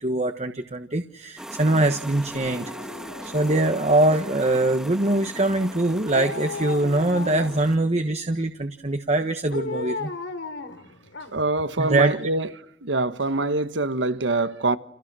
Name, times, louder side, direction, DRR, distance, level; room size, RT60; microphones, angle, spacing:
voice 1, 0.0-2.7 3.3-10.1 11.8-12.2, right 2 dB, 35° right, 1.3 m, -23 dB
sound 1, 1.4-7.8, equal, 5° right, 1.4 m, -39 dB
Dog, 2.3-4.4 6.1-7.8 9.5-11.6 12.0-12.1, left 3 dB, 80° left, 2.8 m, -35 dB
voice 2, 11.3-12.5 12.8-14.8, right 2 dB, 75° right, 1.4 m, -24 dB
30.0 x 29.5 x 6.3 m
head